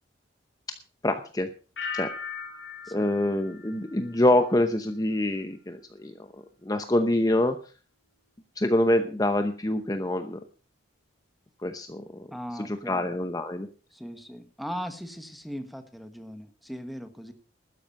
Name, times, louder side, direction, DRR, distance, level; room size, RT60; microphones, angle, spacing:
voice 1, 1.0-1.5 1.9-2.1 2.9-7.6 8.6-10.4 11.6-12.3 12.5-13.7, left 1 dB, 20° left, 8 dB, 0.8 m, -26 dB
sound 1, 1.8-4.6 4.9-5.4, left 5 dB, 80° left, 4.5 m, -39 dB
voice 2, 12.3-13.1 13.9-17.3, equal, ahead, 8 dB, 1.2 m, -39 dB
13.0 x 9.9 x 5.4 m, 0.36 s
head